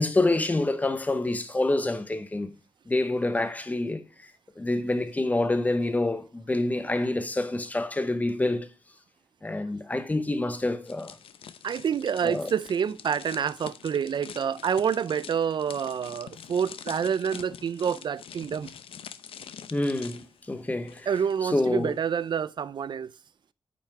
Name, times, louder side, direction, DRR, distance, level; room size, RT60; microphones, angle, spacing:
voice 1, 0.0-2.5 2.9-4.3 4.6-8.7 9.4-11.2 12.2-12.5 19.7-21.1 21.4-22.0, left 2 dB, 15° left, 0.9 m, -27 dB
rustling bubblewrap test, 10.8-21.7 21.9-22.2, left 8 dB, 85° left, 0.6 m, -45 dB
voice 2, 11.6-18.7 21.1-23.1, right 7 dB, 55° right, 0.5 m, -28 dB
9.0 x 5.8 x 4.6 m
wide cardioid pair, 130°, 9 cm